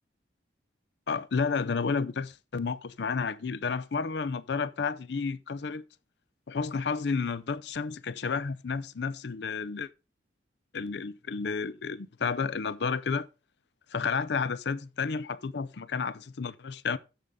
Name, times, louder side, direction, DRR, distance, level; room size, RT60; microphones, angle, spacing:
voice 1, 1.1-5.8 6.5-9.9 10.7-13.3 13.9-17.0, left 5 dB, 65° left, 0.5 m, -31 dB
14.0 x 5.4 x 3.6 m
head